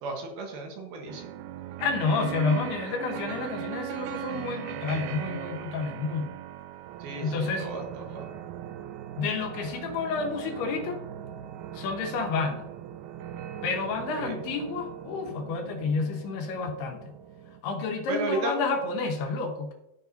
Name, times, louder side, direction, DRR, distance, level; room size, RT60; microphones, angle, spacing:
voice 1, 0.0-1.4 7.0-8.3 14.2-14.3 18.1-18.5, right 3 dB, 70° right, 1 dB, 2.9 m, -34 dB
sound 1, 1.1-17.6, right 11 dB, 90° right, 2.2 m, -39 dB
voice 2, 1.8-6.3 7.2-7.7 9.2-11.0 11.7-12.7 13.6-17.1 17.6-19.7, left 4 dB, 75° left, 3 dB, 3.1 m, -30 dB
14.5 x 6.1 x 2.7 m, 0.91 s
omnidirectional pair, 4.9 m